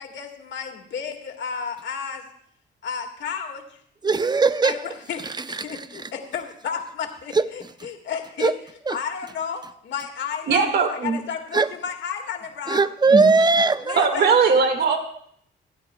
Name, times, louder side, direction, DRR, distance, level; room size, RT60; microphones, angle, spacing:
voice 1, 0.0-2.2 2.8-3.8 4.6-5.2 5.6-8.5 8.9-12.9 13.8-14.3, left 7 dB, 65° left, 2 dB, 1.9 m, -32 dB
voice 2, 4.0-4.8 5.2-6.1 7.3-7.5 7.8-7.9 8.4-8.5 8.9-9.0 11.5-11.7 12.7-14.1, right 3 dB, 20° right, 12 dB, 0.7 m, -20 dB
voice 3, 10.5-11.2 13.1-13.3 14.0-15.0, right 5 dB, 55° right, 4 dB, 1.9 m, -19 dB
27.5 x 9.7 x 2.3 m, 0.66 s
cardioid pair, 90°, 20 cm